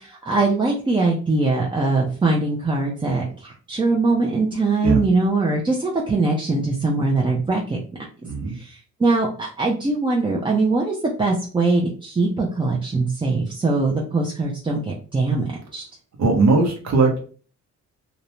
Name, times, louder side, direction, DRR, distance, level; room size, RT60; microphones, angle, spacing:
voice 1, 0.2-7.8 8.6-8.7 9.0-15.4 15.7-15.8, right 3 dB, 15° right, -2 dB, 0.5 m, -21 dB
voice 2, 8.2-8.6 16.2-17.2, right 3 dB, 60° right, 1 dB, 0.9 m, -19 dB
2.5 x 2.1 x 3.0 m, 0.41 s
cardioid pair, 90°, 30 cm